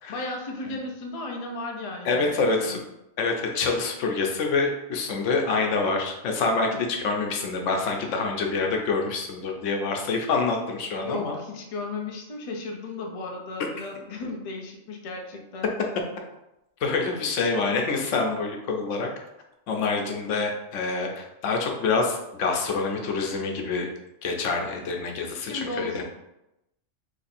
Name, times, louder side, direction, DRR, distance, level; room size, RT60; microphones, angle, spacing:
voice 1, 0.1-2.8 11.0-15.7 25.4-26.0, left 2 dB, 40° left, 1 dB, 0.5 m, -35 dB
voice 2, 2.0-2.8 3.2-11.4 16.8-19.1 19.7-23.9 24.2-26.0, left 4 dB, 90° left, 2 dB, 1.0 m, -26 dB
3.2 x 2.6 x 4.1 m, 0.89 s
omnidirectional pair, 1.2 m